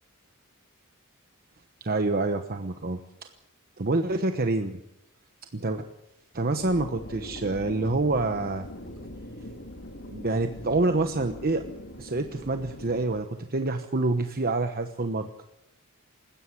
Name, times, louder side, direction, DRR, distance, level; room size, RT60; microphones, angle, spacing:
voice 1, 1.8-3.0 3.8-4.8 5.5-5.9 6.3-8.7 10.1-11.6 12.0-15.3, right 2 dB, 45° right, 7 dB, 1.1 m, -27 dB
sound 1, 6.6-13.2, left 1 dB, 55° left, 2.4 m, -42 dB
20.5 x 16.0 x 8.5 m, 0.86 s
head